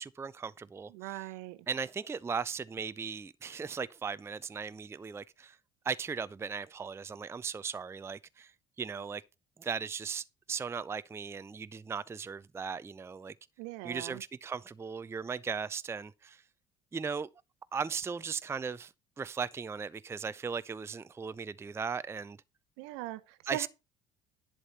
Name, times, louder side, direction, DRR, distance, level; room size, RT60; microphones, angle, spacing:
voice 1, 0.0-1.2 1.7-5.6 5.8-8.5 8.8-9.2 9.6-13.3 13.8-16.4 16.9-17.3 17.7-22.4 23.5-23.7, right 6 dB, 15° right, 0.4 m, -37 dB
voice 2, 0.9-1.6 13.6-14.2 22.8-23.7, right 16 dB, 65° right, 0.8 m, -40 dB
11.0 x 7.4 x 4.1 m
figure-of-eight pair, 55°, 20 cm